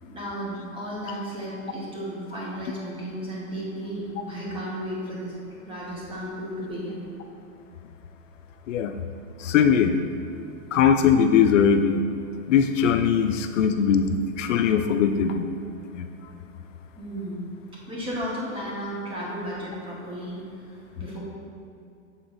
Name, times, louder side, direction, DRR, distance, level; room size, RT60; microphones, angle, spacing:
voice 1, 0.0-5.3 5.6-7.0 16.9-17.5 17.9-21.2, equal, 15° right, -5 dB, 1.1 m, -34 dB
voice 2, 9.4-10.0 10.7-12.1 12.5-15.6 15.9-16.1, left 7 dB, 65° left, 7 dB, 0.5 m, -20 dB
7.2 x 3.8 x 4.0 m, 2.5 s
hypercardioid pair, 150°, 40 cm